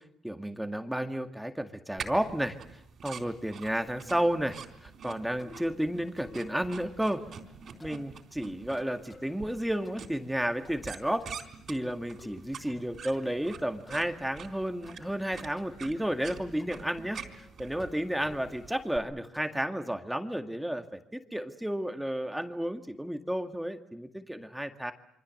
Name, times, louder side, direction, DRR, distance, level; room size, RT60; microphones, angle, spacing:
voice 1, 0.2-7.2 7.8-11.3 11.7-24.9, equal, 5° right, 7 dB, 2.1 m, -32 dB
sound 1, 2.0-19.0, right 6 dB, 60° right, 3.9 m, -46 dB
sound 2, 5.4-5.8 6.2-6.4 6.7-7.4 7.8-8.1 8.8-9.3 9.8-10.2 10.6-10.9 11.2-11.9 12.2-12.8 13.1-14.0 14.9-15.1 15.6-15.8 16.2-16.9 17.1-17.5 17.8-19.6, left 3 dB, 35° left, 7.5 m, -52 dB
27.5 x 24.5 x 7.9 m, 0.74 s
cardioid pair, 90°, 0 cm